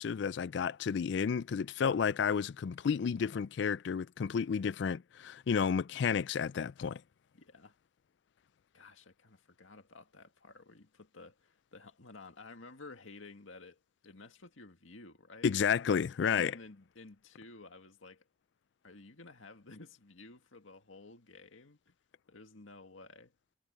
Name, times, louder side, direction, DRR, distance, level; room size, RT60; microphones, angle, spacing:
voice 1, 0.0-7.0 15.4-16.5, left 6 dB, 60° left, 0.4 m, -31 dB
voice 2, 7.3-7.7 8.7-15.5 16.3-18.3 18.8-21.9 22.3-23.3, left 3 dB, 85° left, 2.0 m, -53 dB
head